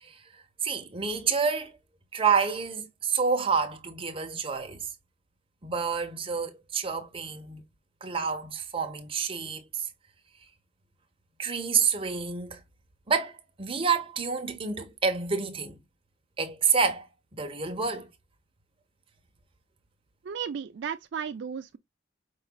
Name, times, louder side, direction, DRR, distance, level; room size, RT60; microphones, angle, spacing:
voice 1, 0.6-1.7 2.1-4.9 5.6-7.6 8.0-9.9 11.4-12.6 13.1-15.8 16.4-17.1 17.3-18.1, right 5 dB, 30° right, 0.9 m, -28 dB
voice 2, 20.2-21.8, right 7 dB, 60° right, 0.4 m, -34 dB
5.4 x 4.0 x 2.2 m
head